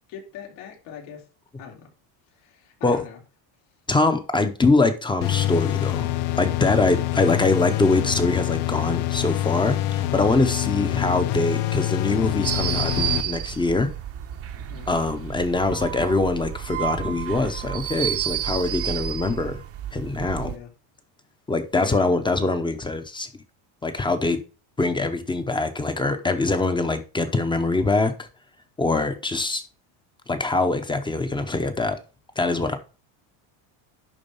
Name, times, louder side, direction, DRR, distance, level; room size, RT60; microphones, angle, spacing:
voice 1, 0.1-1.2 1.6-1.9 2.4-3.2 14.6-14.9 20.4-20.7 21.7-22.1, left 8 dB, 90° left, 3.6 m, -41 dB
voice 2, 3.9-6.1 6.4-13.9 14.9-19.6 19.9-20.5 21.5-23.3 23.8-24.4 24.8-28.1 28.8-29.6 30.3-32.0 32.4-32.8, left 3 dB, 10° left, 0.6 m, -23 dB
sound 1, 5.2-13.2, left 14 dB, 55° left, 0.8 m, -25 dB
sound 2, 12.4-20.6, right 11 dB, 30° right, 0.6 m, -30 dB
11.0 x 3.9 x 5.3 m
cardioid pair, 170°, 49 cm